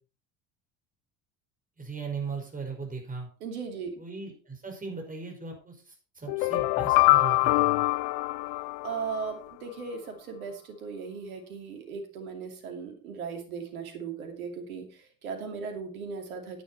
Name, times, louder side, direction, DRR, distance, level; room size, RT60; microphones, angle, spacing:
voice 1, 1.8-3.3 4.0-7.8, right 4 dB, 20° right, 1 dB, 5.4 m, -38 dB
voice 2, 3.4-3.9 8.8-16.6, right 5 dB, 75° right, 5 dB, 2.7 m, -37 dB
sound 1, 6.3-9.3, left 22 dB, 55° left, 0.6 m, -24 dB
11.0 x 9.7 x 4.3 m, 0.37 s
hypercardioid pair, 65°, 43 cm